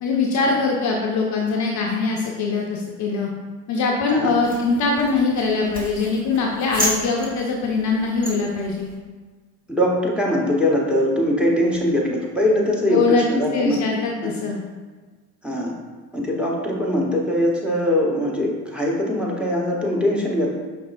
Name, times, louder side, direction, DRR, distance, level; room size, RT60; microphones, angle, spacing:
voice 1, 0.0-3.3 3.7-8.9 12.9-14.6, left 4 dB, 40° left, 0 dB, 0.6 m, -22 dB
sound 1, 4.4-9.0, right 1 dB, 20° right, 1.2 m, -32 dB
voice 2, 9.7-13.8 14.2-14.4 15.4-15.8 16.1-20.5, left 1 dB, ahead, -3 dB, 0.9 m, -21 dB
5.1 x 3.3 x 2.5 m, 1.4 s
figure-of-eight pair, 60°, 46 cm